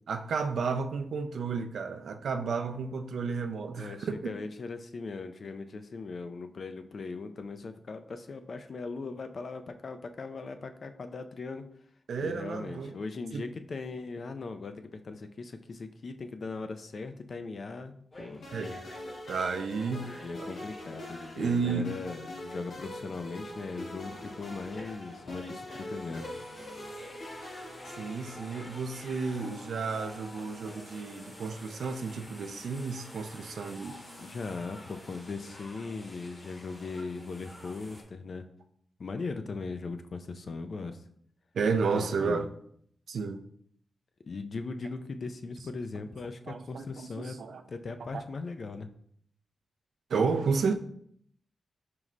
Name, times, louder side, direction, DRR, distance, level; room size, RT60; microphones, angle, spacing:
voice 1, 0.1-4.4 12.1-13.0 13.3-13.4 18.5-18.8 19.3-20.1 20.4-20.5 21.4-21.9 28.0-34.0 41.5-42.5 43.1-43.4 46.5-47.6 48.1-48.2 50.1-50.7, right 5 dB, 80° right, 0.3 m, -32 dB
voice 2, 3.7-11.6 12.2-18.5 20.0-26.4 34.2-38.4 39.0-41.0 41.9-42.5 44.3-47.4 47.7-48.9, left 4 dB, 50° left, 0.3 m, -39 dB
sound 1, 18.1-22.5 22.9-38.0, left 1 dB, 30° left, 0.9 m, -49 dB
sound 2, 18.4-29.1, left 1 dB, 75° left, 1.0 m, -44 dB
4.5 x 2.1 x 3.7 m
wide cardioid pair, 120°, 0 cm